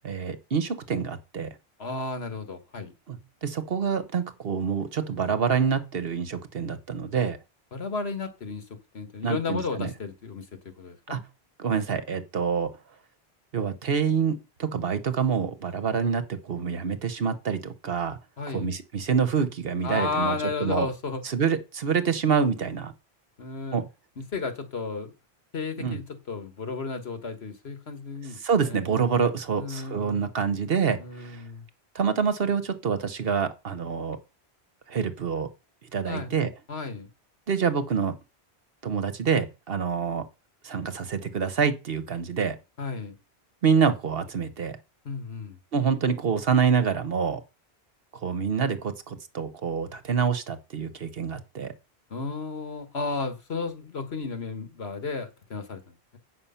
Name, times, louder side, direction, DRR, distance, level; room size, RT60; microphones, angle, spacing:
voice 1, 0.0-1.5 3.1-7.4 9.2-9.9 11.1-11.2 11.6-12.7 13.5-18.2 18.5-20.9 21.2-22.9 23.7-23.9 25.8-26.0 28.4-31.4 31.9-34.2 34.9-35.5 35.9-36.5 37.5-38.2 38.8-40.2 40.6-42.6 43.6-44.8 45.7-47.4 48.2-51.7, right 6 dB, 65° right, 1.2 m, -26 dB
voice 2, 1.8-2.9 7.7-8.7 8.9-10.5 10.8-11.2 18.4-18.7 19.8-21.2 23.4-23.8 24.2-25.1 25.5-29.1 29.6-30.2 31.0-31.6 36.1-36.3 36.7-37.1 42.8-43.1 45.1-45.6 52.1-56.2, left 4 dB, 75° left, 1.8 m, -33 dB
8.6 x 6.2 x 5.7 m
omnidirectional pair, 1.1 m